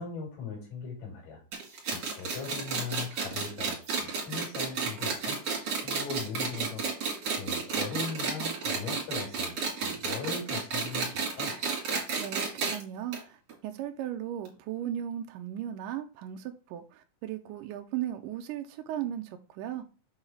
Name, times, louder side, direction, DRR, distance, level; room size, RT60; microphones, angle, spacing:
voice 1, 0.0-1.4 1.9-5.4 5.8-6.9 7.3-9.6 9.8-11.5, left 5 dB, 75° left, 4.4 m, -39 dB
sound 1, 1.5-12.8 13.1-13.2 13.5-13.6 14.5-14.6, right 5 dB, 50° right, 3.0 m, -32 dB
voice 2, 12.2-19.9, right 11 dB, 80° right, 2.2 m, -37 dB
7.1 x 4.0 x 4.4 m
omnidirectional pair, 3.9 m